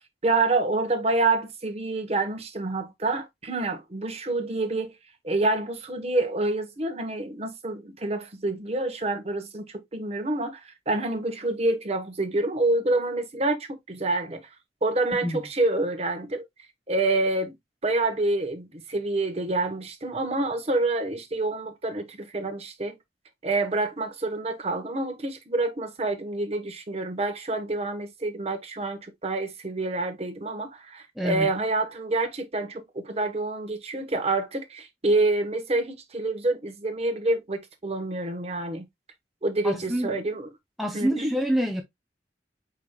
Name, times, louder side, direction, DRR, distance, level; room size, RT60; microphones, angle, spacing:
voice 1, 0.2-4.9 5.2-14.4 14.8-16.4 16.9-17.5 17.8-22.9 23.4-38.8 39.4-40.5 40.9-41.3, right 2 dB, 35° right, 1.1 m, -27 dB
voice 2, 31.2-31.5 39.6-40.1 40.8-41.8, equal, ahead, 0.6 m, -26 dB
5.0 x 4.7 x 2.2 m
head